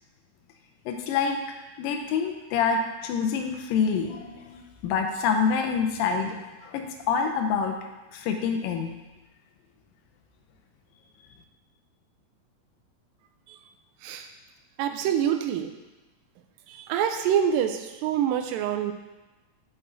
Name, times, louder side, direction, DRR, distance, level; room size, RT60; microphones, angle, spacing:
voice 1, 0.9-1.4 1.8-7.8 8.1-8.9, left 6 dB, 85° left, 4 dB, 2.4 m, -27 dB
voice 2, 14.8-15.7 16.7-18.9, right 9 dB, 90° right, 7 dB, 2.3 m, -26 dB
6.5 x 6.0 x 3.9 m, 1.1 s
omnidirectional pair, 3.9 m